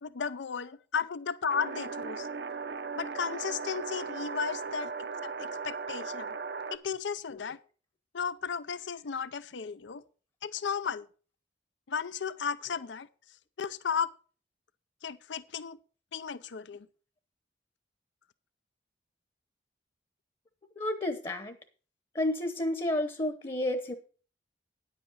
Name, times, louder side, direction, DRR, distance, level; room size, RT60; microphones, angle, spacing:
voice 1, 0.0-2.3 3.0-6.4 6.7-7.6 8.1-10.0 10.4-11.1 11.9-13.1 13.6-14.1 15.0-15.8 16.1-16.9, left 6 dB, 85° left, 16 dB, 0.5 m, -34 dB
sound 1, 1.5-6.8, right 5 dB, 60° right, 0.6 m, -37 dB
voice 2, 20.8-21.6 22.1-23.9, left 1 dB, 30° left, 8 dB, 0.9 m, -31 dB
10.0 x 8.2 x 5.5 m, 0.39 s
head